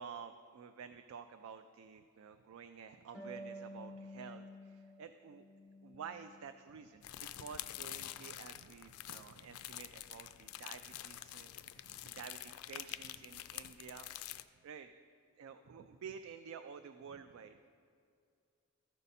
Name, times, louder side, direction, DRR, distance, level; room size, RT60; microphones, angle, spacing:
voice 1, 0.0-5.4 5.8-14.4 14.6-14.9 15.4-17.8, right 6 dB, 65° right, 9 dB, 0.3 m, -51 dB
Harp, 3.1-6.5 6.9-8.0, equal, ahead, 0.9 m, -52 dB
sound 1, 7.0-14.4, left 13 dB, 80° left, 0.3 m, -47 dB
13.5 x 5.3 x 4.2 m, 2.4 s
head